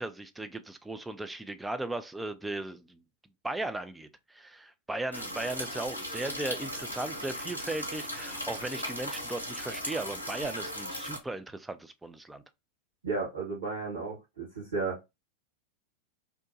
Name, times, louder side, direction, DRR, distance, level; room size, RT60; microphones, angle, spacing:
voice 1, 0.0-3.0 3.4-12.4, right 2 dB, 5° right, 0.3 m, -37 dB
sound 1, 5.1-11.2, equal, 85° left, 0.6 m, -37 dB
voice 2, 13.0-15.0, right 4 dB, 65° right, 1.2 m, -33 dB
2.8 x 2.2 x 2.6 m
figure-of-eight pair, 90°, 0 cm